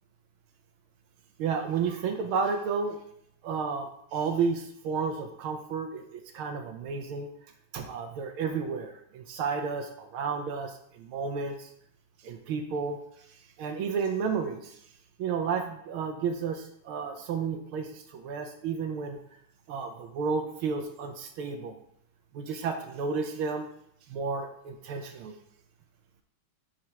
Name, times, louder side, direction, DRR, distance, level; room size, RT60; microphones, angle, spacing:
voice 1, 1.4-3.0 3.4-7.3 7.7-11.7 12.2-14.8 15.2-19.2 19.7-21.8 22.3-23.7 24.1-25.3, right 5 dB, 80° right, 5 dB, 1.6 m, -32 dB
9.7 x 3.8 x 4.6 m, 0.70 s
omnidirectional pair, 2.4 m